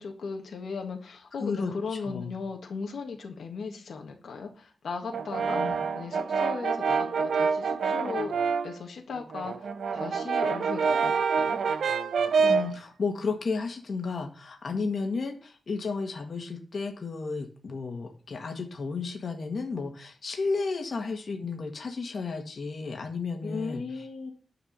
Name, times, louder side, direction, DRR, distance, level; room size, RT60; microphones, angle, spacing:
voice 1, 0.0-8.3 8.6-11.6 23.4-24.3, left 5 dB, 85° left, 2 dB, 1.7 m, -37 dB
voice 2, 1.4-1.7 2.0-2.3 5.5-5.8 12.4-23.8, left 4 dB, 50° left, 3 dB, 1.8 m, -33 dB
Brass instrument, 5.1-8.8 9.2-12.8, right 5 dB, 85° right, 0.8 m, -27 dB
10.0 x 4.9 x 6.7 m, 0.38 s
wide cardioid pair, 160°, 0 cm